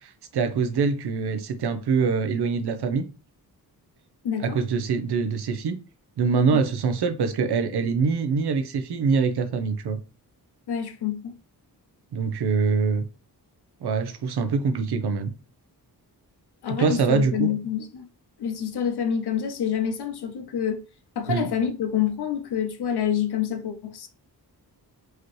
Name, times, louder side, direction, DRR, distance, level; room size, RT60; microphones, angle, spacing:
voice 1, 0.0-3.0 4.4-5.8 6.2-10.0 12.1-13.1 13.8-15.3 16.8-17.5 21.3-21.5, right 5 dB, 85° right, 0.7 m, -24 dB
voice 2, 4.2-4.6 6.5-6.6 10.7-11.3 16.6-18.1 18.4-20.8 21.2-24.1, left 8 dB, 85° left, 0.8 m, -27 dB
4.8 x 3.0 x 3.1 m
wide cardioid pair, 175°, 38 cm